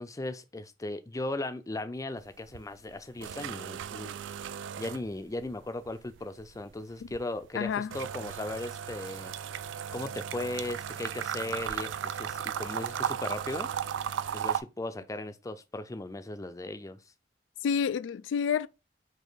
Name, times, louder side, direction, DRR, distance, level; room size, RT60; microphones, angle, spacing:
voice 1, 0.0-4.1 4.8-9.3 9.9-13.7 14.3-17.0, left 2 dB, 20° left, 0.4 m, -37 dB
sound 1, 2.2-2.6 2.9-5.5 5.8-14.6, right 8 dB, 85° right, 0.3 m, -36 dB
voice 2, 7.5-7.9 17.6-18.7, left 7 dB, 90° left, 0.3 m, -29 dB
5.1 x 2.6 x 3.9 m
head